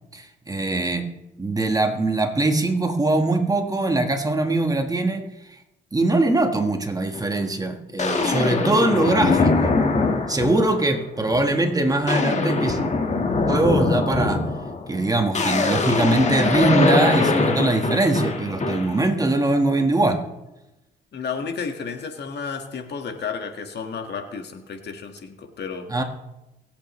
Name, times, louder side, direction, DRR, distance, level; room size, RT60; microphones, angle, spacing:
voice 1, 0.1-1.1 1.4-5.2 5.9-9.7 10.3-12.8 13.5-14.5 14.9-20.2 25.9-26.0, right 2 dB, 20° right, 5 dB, 1.6 m, -22 dB
sound 1, 7.1-7.3 8.0-10.9 11.3-11.6 11.9-19.0, left 3 dB, 35° left, 1.7 m, -22 dB
voice 2, 21.1-25.9, left 5 dB, 60° left, 5 dB, 1.8 m, -32 dB
24.0 x 8.4 x 3.2 m, 0.95 s
cardioid pair, 90°, 20 cm